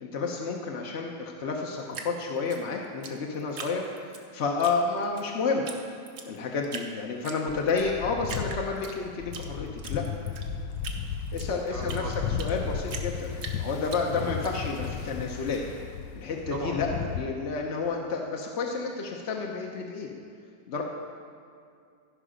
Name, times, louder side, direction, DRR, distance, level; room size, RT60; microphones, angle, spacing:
voice 1, 0.0-3.8 4.3-5.7 6.3-10.0 11.3-15.6 16.1-20.1 20.7-20.8, left 4 dB, 55° left, 0 dB, 0.9 m, -30 dB
Drip, 1.9-4.2 4.6-5.3 5.7-5.8 6.1-6.9 7.2-7.9 8.2-9.5 9.8-12.6 12.9-14.5, right 5 dB, 70° right, 1.4 m, -40 dB
sound 1, 7.5-17.2, left 7 dB, 90° left, 1.3 m, -35 dB
voice 2, 11.7-12.2 14.1-14.4 16.5-16.8, right 3 dB, 40° right, 0 dB, 1.0 m, -37 dB
15.0 x 5.5 x 5.0 m, 2.4 s
omnidirectional pair, 1.9 m